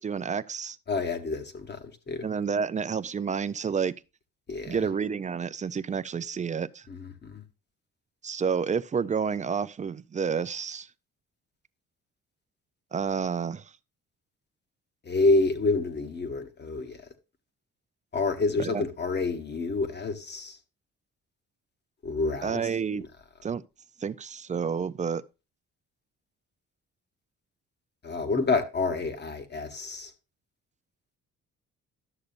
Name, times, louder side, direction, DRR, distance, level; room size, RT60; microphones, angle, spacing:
voice 1, 0.0-0.8 2.2-3.9 4.7-6.9 8.2-10.9 12.9-13.7 18.6-18.8 22.4-23.0 23.4-23.6 24.0-25.2, right 6 dB, 25° right, 0.4 m, -29 dB
voice 2, 0.9-1.8 2.1-2.3 4.5-4.8 6.9-7.4 15.1-17.0 18.1-20.6 22.0-22.6 28.0-30.1, left 3 dB, 35° left, 1.2 m, -28 dB
12.0 x 6.6 x 2.5 m
cardioid pair, 90°, 30 cm